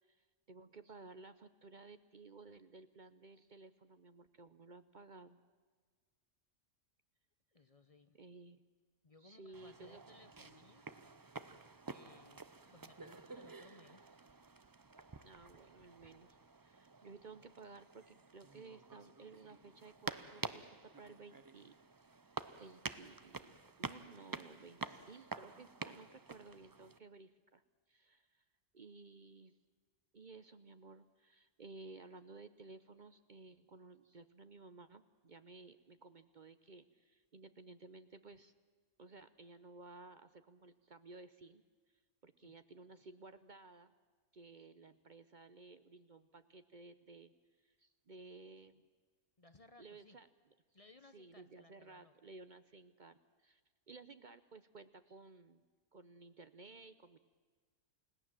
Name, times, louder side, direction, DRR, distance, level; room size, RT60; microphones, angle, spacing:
voice 1, 0.1-5.4 8.1-8.6 9.2-10.2 15.2-21.7 22.2-27.6 27.9-28.4 28.7-29.6 30.1-38.5 39.0-41.6 42.2-43.9 44.3-47.3 47.6-48.9 49.8-50.3 51.1-53.6 53.9-55.6 55.9-57.2, right 3 dB, 45° right, 11 dB, 0.9 m, -56 dB
voice 2, 7.5-8.2 9.0-10.9 11.9-12.4 12.7-14.1 42.4-42.5 49.4-50.2 50.7-52.1, left 2 dB, 30° left, 11 dB, 0.9 m, -63 dB
sound 1, 9.5-27.0, right 3 dB, 25° right, 0.5 m, -49 dB
29.5 x 17.5 x 7.5 m, 1.5 s
omnidirectional pair, 1.3 m